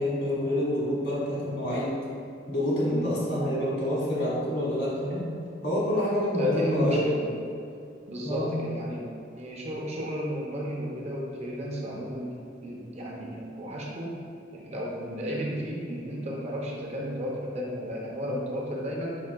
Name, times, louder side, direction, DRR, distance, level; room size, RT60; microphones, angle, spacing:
voice 1, 0.0-2.0 2.5-5.3 5.6-7.1 8.2-8.6, left 1 dB, 65° left, -7 dB, 1.4 m, -27 dB
voice 2, 6.4-7.2 8.1-9.0 9.4-12.3 12.6-14.2 14.5-19.2, equal, 35° right, -3 dB, 0.6 m, -33 dB
4.7 x 4.3 x 2.2 m, 2.4 s
head